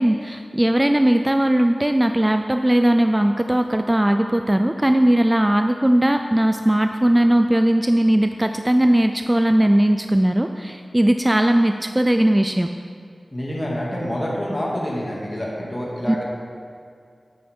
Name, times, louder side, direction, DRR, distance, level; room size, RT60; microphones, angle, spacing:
voice 1, 0.0-12.7 16.1-16.2, right 1 dB, 15° right, 6 dB, 0.3 m, -18 dB
voice 2, 13.3-16.2, equal, 30° left, -5 dB, 2.3 m, -27 dB
9.4 x 8.5 x 3.6 m, 2.3 s
wide cardioid pair, 65°, 0 cm